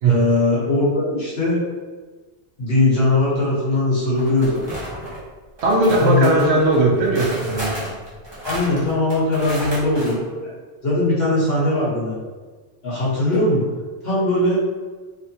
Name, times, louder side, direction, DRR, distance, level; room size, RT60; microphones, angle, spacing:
voice 1, 0.0-1.6 2.6-4.6 6.0-6.4 8.4-10.5 10.8-12.2 12.8-13.7 14.0-14.6, left 2 dB, 60° left, -7 dB, 1.3 m, -20 dB
sound 1, 4.2-5.2 5.6-10.1, equal, 25° right, 0.9 m, -32 dB
voice 2, 5.6-7.9, right 2 dB, 70° right, -1 dB, 0.9 m, -18 dB
3.2 x 2.8 x 2.7 m, 1.4 s
omnidirectional pair, 1.1 m